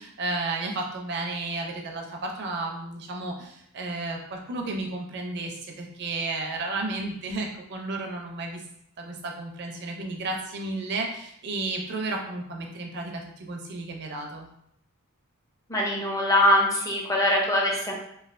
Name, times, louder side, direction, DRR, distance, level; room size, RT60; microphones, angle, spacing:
voice 1, 0.0-8.6 9.0-14.5, right 2 dB, 50° right, 1 dB, 0.5 m, -33 dB
voice 2, 15.7-17.9, left 1 dB, 15° left, -1 dB, 0.5 m, -22 dB
3.1 x 2.3 x 2.5 m, 0.74 s
head